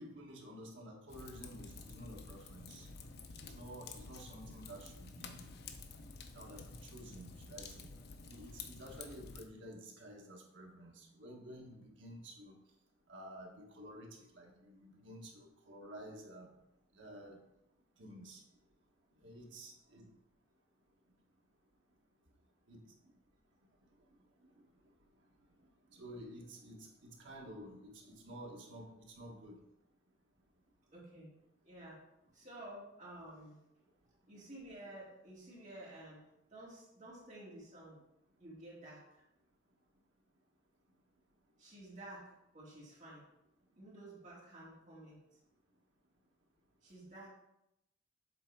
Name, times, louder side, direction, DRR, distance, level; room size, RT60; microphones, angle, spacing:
voice 1, 0.0-2.9 3.4-5.5 6.3-7.9 8.3-12.6 13.1-16.5 16.9-17.4 18.0-18.4 19.2-20.1 22.7-22.8 25.9-29.6, right 1 dB, 70° right, 0 dB, 1.4 m, -51 dB
Fire, 1.1-9.4, left 4 dB, 55° left, 0.7 m, -51 dB
voice 2, 30.9-31.3 31.6-32.0 32.3-33.6 34.3-36.2 36.5-38.0 38.4-39.2 41.6-43.3 43.8-45.2 46.8-47.3, right 1 dB, 40° right, -6 dB, 2.5 m, -52 dB
7.7 x 3.6 x 4.6 m, 0.87 s
head